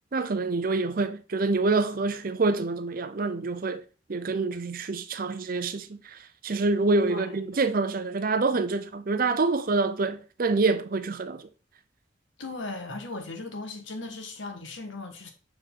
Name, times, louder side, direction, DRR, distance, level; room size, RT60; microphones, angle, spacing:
voice 1, 0.1-3.8 4.1-11.5, right 3 dB, 50° right, 0.5 m, -26 dB
voice 2, 12.4-15.3, left 2 dB, 75° left, 1.4 m, -37 dB
6.5 x 4.8 x 3.7 m
head